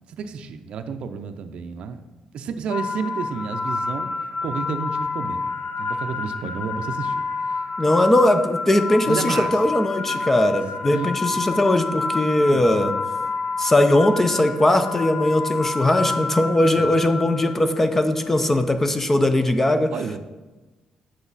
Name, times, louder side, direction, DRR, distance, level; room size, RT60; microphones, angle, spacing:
voice 1, 0.1-2.0 2.3-4.1 4.4-5.5 5.8-7.2 9.1-9.5 10.9-11.4 12.5-12.7 16.8-17.0 19.9-20.2, right 5 dB, 65° right, 7 dB, 0.5 m, -31 dB
sound 1, 2.7-17.8, left 4 dB, 55° left, 1.1 m, -28 dB
voice 2, 7.8-12.9 13.6-19.9, left 1 dB, 15° left, 9 dB, 0.6 m, -19 dB
8.1 x 6.3 x 4.0 m, 1.2 s
cardioid pair, 130°, 2 cm